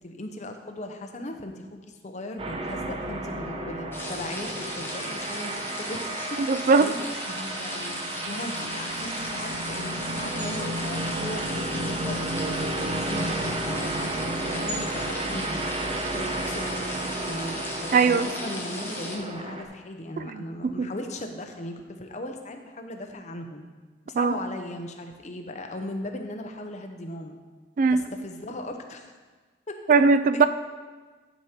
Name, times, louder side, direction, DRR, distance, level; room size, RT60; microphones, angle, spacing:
voice 1, 0.0-6.0 6.3-6.4 6.8-14.3 14.6-15.6 16.1-16.7 17.3-23.6 24.0-27.4 27.9-29.1 29.7-29.8, left 1 dB, 45° left, 4 dB, 0.9 m, -38 dB
sound 1, 2.4-19.6, right 1 dB, 35° right, 0.7 m, -32 dB
sound 2, 3.9-19.2, left 1 dB, 15° left, 1.2 m, -37 dB
voice 2, 6.5-6.9 17.9-18.3 20.2-20.9 24.1-24.4 27.8-28.0 29.9-30.5, right 4 dB, 50° right, 12 dB, 0.3 m, -20 dB
11.5 x 5.1 x 4.5 m, 1.4 s
head